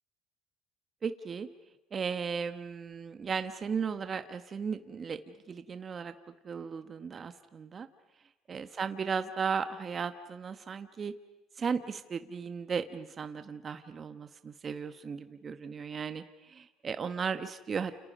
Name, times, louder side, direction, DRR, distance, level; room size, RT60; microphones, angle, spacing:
voice 1, 1.0-1.5 1.9-5.2 5.5-6.1 6.4-7.9 8.5-11.1 11.6-17.9, right 6 dB, 40° right, 9 dB, 1.3 m, -36 dB
29.5 x 28.5 x 5.4 m, 1.0 s
supercardioid pair, 75°, 0 cm